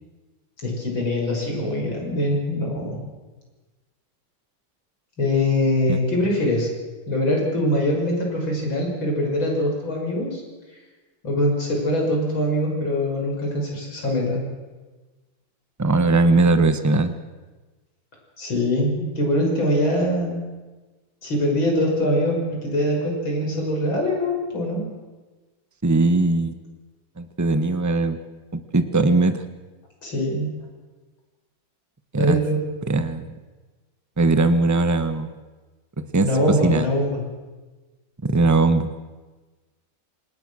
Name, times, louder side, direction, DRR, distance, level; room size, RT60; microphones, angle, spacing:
voice 1, 0.6-3.0 5.2-6.7 7.1-10.4 11.2-14.4 18.4-20.4 21.2-24.9 30.0-30.5 32.1-32.6 36.2-37.2, left 1 dB, 90° left, 0 dB, 6.9 m, -23 dB
voice 2, 15.8-17.1 25.8-26.6 27.2-28.2 28.5-29.4 32.1-32.4 32.9-33.2 34.2-35.3 36.0-36.3 36.6-36.9 38.2-38.9, right 2 dB, 15° right, 10 dB, 0.8 m, -19 dB
26.0 x 19.5 x 6.3 m, 1.3 s
omnidirectional pair, 2.1 m